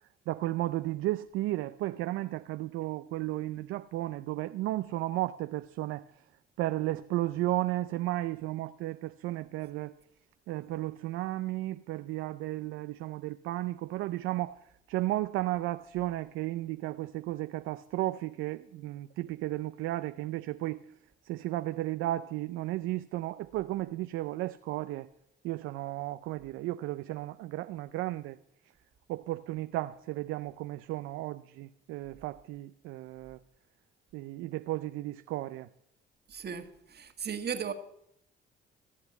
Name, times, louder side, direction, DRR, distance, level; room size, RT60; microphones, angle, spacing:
voice 1, 0.3-6.0 6.6-9.9 10.5-14.6 14.9-20.8 21.2-25.1 25.4-28.4 29.1-33.4 34.1-35.7, right 16 dB, 85° right, 0.5 m, -34 dB
voice 2, 36.3-37.7, right 7 dB, 55° right, 1.6 m, -36 dB
15.0 x 8.3 x 8.1 m
supercardioid pair, 65°, 21 cm